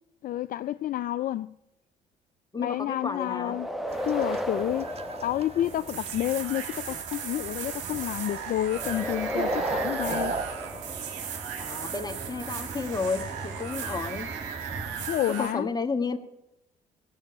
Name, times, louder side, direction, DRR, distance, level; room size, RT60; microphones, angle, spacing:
voice 1, 0.2-1.5 2.6-3.7 4.0-10.3 15.1-15.7, left 13 dB, 50° left, 0.4 m, -30 dB
voice 2, 2.5-3.5 11.6-14.3 15.4-16.2, left 4 dB, 20° left, 1.5 m, -32 dB
sound 1, 3.3-6.1 8.7-11.4, equal, ahead, 1.1 m, -34 dB
sound 2, 3.9-15.2, right 4 dB, 35° right, 1.6 m, -39 dB
sound 3, 5.6-15.5, right 7 dB, 80° right, 1.7 m, -37 dB
17.5 x 6.3 x 8.1 m
supercardioid pair, 60°, 18 cm